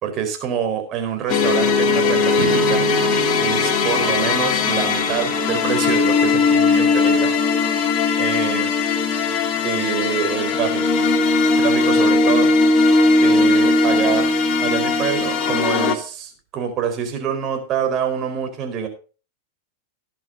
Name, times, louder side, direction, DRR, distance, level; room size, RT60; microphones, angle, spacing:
voice 1, 0.0-2.8 3.4-7.3 8.2-8.7 9.6-10.8 11.5-12.5 13.2-14.3 14.6-18.9, right 8 dB, 35° right, 5 dB, 4.4 m, -26 dB
sound 1, 1.3-16.0, left 3 dB, 35° left, 2.6 m, -18 dB
Strum, 2.3-7.0, right 8 dB, 55° right, 4.3 m, -33 dB
17.5 x 11.0 x 2.7 m, 0.36 s
figure-of-eight pair, 90°, 0 cm